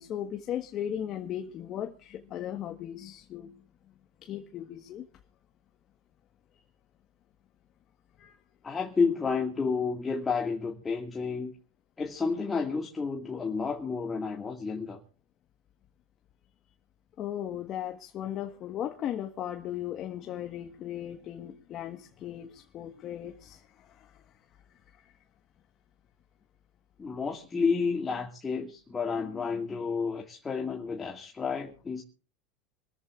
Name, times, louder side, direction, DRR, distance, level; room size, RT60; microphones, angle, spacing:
voice 1, 0.0-3.5 4.2-5.1 6.5-6.6 8.2-8.4 17.2-24.2 25.0-25.1, left 10 dB, 40° left, 4 dB, 1.5 m, -37 dB
voice 2, 8.6-11.5 12.0-15.0 27.0-32.0, left 5 dB, 20° left, 2 dB, 2.1 m, -30 dB
27.0 x 14.0 x 2.5 m, 0.39 s
hypercardioid pair, 100°, 0 cm